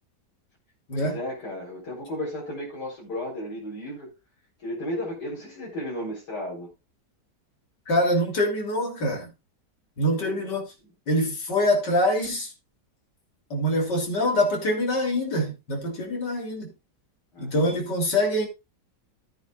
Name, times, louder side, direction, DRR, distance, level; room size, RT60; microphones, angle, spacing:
voice 1, 0.9-4.1 4.6-6.7 10.0-10.5 17.3-17.8, left 1 dB, 70° left, 5.2 m, -34 dB
voice 2, 7.9-9.3 10.0-10.6 11.1-12.5 13.5-16.7 17.4-18.5, left 1 dB, 85° left, 3.7 m, -24 dB
14.5 x 9.1 x 2.4 m
omnidirectional pair, 1.8 m